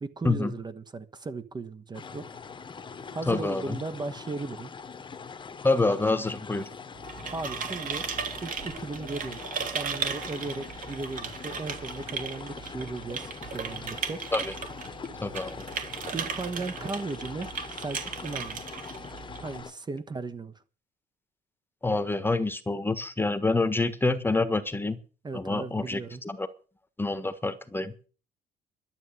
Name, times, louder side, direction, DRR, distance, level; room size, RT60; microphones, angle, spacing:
voice 1, 0.0-2.4 3.1-4.7 7.3-8.1 8.4-9.5 9.7-14.2 16.1-18.6 19.4-20.5 25.2-26.2, right 3 dB, 25° right, 1.3 m, -36 dB
sound 1, 1.9-19.7, left 5 dB, 30° left, 1.3 m, -42 dB
voice 2, 3.3-3.8 5.6-6.7 14.3-14.5 15.2-15.6 21.8-25.0 25.3-26.5 27.0-27.9, left 3 dB, 15° left, 1.4 m, -27 dB
sound 2, 6.9-19.6, right 6 dB, 55° right, 3.1 m, -36 dB
12.0 x 8.0 x 9.0 m
cardioid pair, 110°, 17 cm